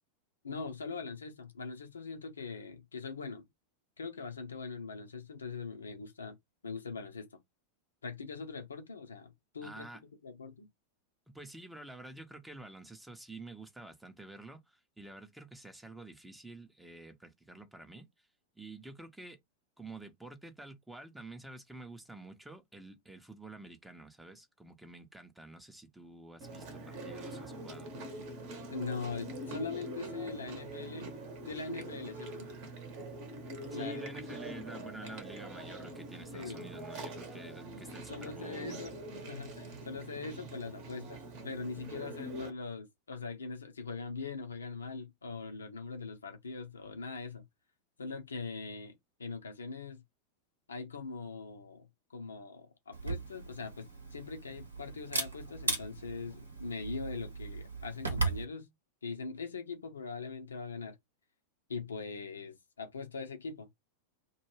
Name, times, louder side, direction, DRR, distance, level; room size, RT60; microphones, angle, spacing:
voice 1, 0.4-3.5 4.0-6.3 6.6-7.4 8.0-9.9 10.2-10.7 28.7-31.1 31.5-32.5 33.7-34.0 35.0-35.1 36.3-36.6 38.1-38.9 39.3-47.5 48.0-48.9 49.2-50.0 50.7-58.7 59.0-61.0 61.7-63.9, left 4 dB, 70° left, 0.6 m, -42 dB
voice 2, 9.6-10.0 11.3-18.3 18.5-19.4 19.8-27.9 33.7-38.8, right 2 dB, 5° right, 0.6 m, -49 dB
Chewing mastication, 26.4-42.5, right 1 dB, 45° right, 0.8 m, -44 dB
Camera, 52.9-58.4, right 3 dB, 75° right, 0.9 m, -37 dB
2.2 x 2.2 x 3.1 m
figure-of-eight pair, 90°, 0 cm